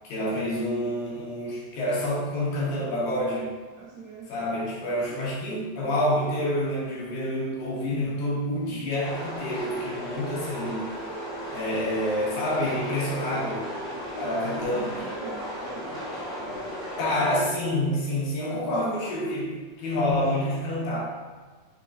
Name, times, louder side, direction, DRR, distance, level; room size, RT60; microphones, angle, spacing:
voice 1, 0.1-3.5 4.3-10.9 11.5-13.6 14.2-14.9 17.0-21.0, left 1 dB, 75° left, -6 dB, 2.5 m, -28 dB
voice 2, 3.8-5.3 13.3-13.6 14.2-16.7, right 3 dB, 80° right, -9 dB, 1.6 m, -43 dB
sound 1, 9.0-17.7, equal, 55° left, 1.3 m, -35 dB
5.8 x 3.0 x 2.4 m, 1.4 s
omnidirectional pair, 4.2 m